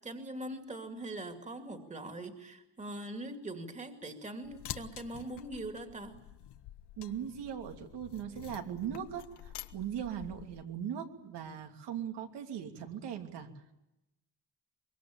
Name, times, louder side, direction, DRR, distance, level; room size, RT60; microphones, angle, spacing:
voice 1, 0.0-6.1, right 1 dB, 15° right, 6 dB, 2.4 m, -42 dB
sound 1, 4.4-10.6, left 12 dB, 80° left, 1.2 m, -48 dB
voice 2, 7.0-13.5, right 9 dB, 80° right, 4 dB, 3.0 m, -39 dB
24.0 x 22.5 x 8.8 m, 0.91 s
cardioid pair, 170°, 40 cm